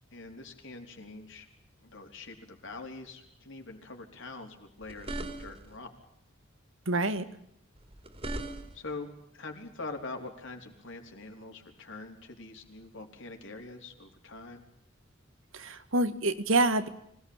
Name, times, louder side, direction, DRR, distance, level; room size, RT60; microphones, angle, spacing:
voice 1, 0.1-1.5 1.8-5.9 8.7-14.6, left 3 dB, 65° left, 3 dB, 4.5 m, -44 dB
sound 1, 4.8-5.8 7.8-8.9, right 2 dB, 30° right, 3.4 m, -39 dB
voice 2, 6.9-7.3 15.5-16.9, right 2 dB, 70° right, 10 dB, 1.9 m, -27 dB
25.0 x 19.0 x 9.1 m, 0.74 s
head